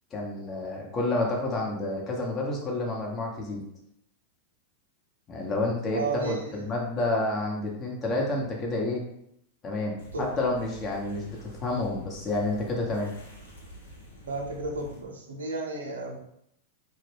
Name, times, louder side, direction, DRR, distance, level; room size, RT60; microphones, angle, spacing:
voice 1, 0.1-3.6 5.3-9.0 9.6-13.1, left 2 dB, 30° left, -1 dB, 0.8 m, -29 dB
voice 2, 5.9-6.7 10.1-10.3 14.2-16.2, right 3 dB, 75° right, 1 dB, 0.6 m, -33 dB
sound 1, 10.0-15.0, equal, 75° left, 0.7 m, -47 dB
2.2 x 2.1 x 3.3 m, 0.74 s
figure-of-eight pair, 95°, 0 cm